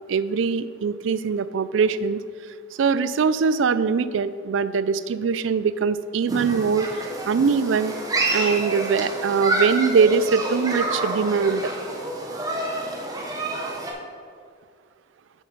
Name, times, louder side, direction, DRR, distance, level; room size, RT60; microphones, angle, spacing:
voice 1, 0.0-2.2 2.8-6.9 7.3-7.9 8.3-11.7, right 5 dB, 85° right, 15 dB, 0.4 m, -22 dB
Human group actions, 6.3-13.9, right 2 dB, 20° right, 1.0 m, -28 dB
6.6 x 6.3 x 5.3 m, 2.2 s
head